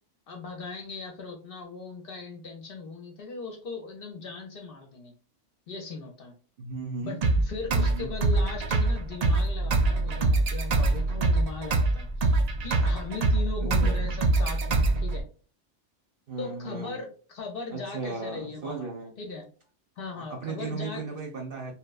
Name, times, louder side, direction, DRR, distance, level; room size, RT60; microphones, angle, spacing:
voice 1, 0.3-5.1 5.7-6.3 7.0-12.3 12.6-15.2 16.4-18.9 19.2-19.4 20.0-21.0, left 4 dB, 60° left, 2 dB, 0.7 m, -38 dB
voice 2, 6.6-7.2 7.7-8.1 13.6-14.0 16.3-17.0 17.7-19.1 20.1-21.7, right 4 dB, 55° right, 2 dB, 0.8 m, -36 dB
sound 1, 7.2-15.2, right 2 dB, 80° right, 0.3 m, -24 dB
2.9 x 2.1 x 2.3 m, 0.40 s
omnidirectional pair, 1.2 m